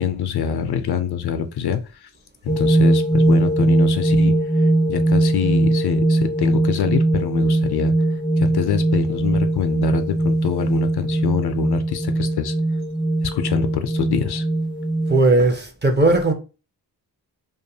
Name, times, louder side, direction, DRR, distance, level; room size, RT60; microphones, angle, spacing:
voice 1, 0.0-2.1 2.4-4.3 4.9-7.9 8.4-12.5 13.2-14.4, left 8 dB, 60° left, 0.5 m, -25 dB
sound 1, 2.5-15.3, right 2 dB, 10° left, 0.5 m, -20 dB
voice 2, 15.1-16.3, right 2 dB, 25° right, 0.7 m, -17 dB
2.5 x 2.4 x 2.7 m
cardioid pair, 50°, 44 cm